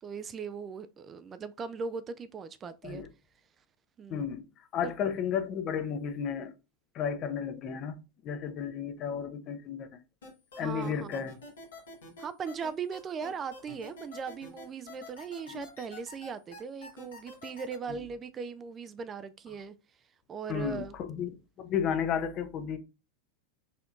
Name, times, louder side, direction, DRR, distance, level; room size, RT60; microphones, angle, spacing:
voice 1, 0.0-3.0 4.0-4.3 4.8-4.9 10.5-11.3 12.2-19.7 20.3-20.9, right 6 dB, 30° right, 0.3 m, -39 dB
voice 2, 4.1-6.5 6.9-9.9 10.6-11.3 15.5-15.6 17.9-18.0 20.5-22.8, left 7 dB, 40° left, 0.5 m, -33 dB
sound 1, 10.2-17.8, left 2 dB, 75° left, 1.2 m, -47 dB
4.2 x 2.7 x 2.4 m
hypercardioid pair, 90°, 0 cm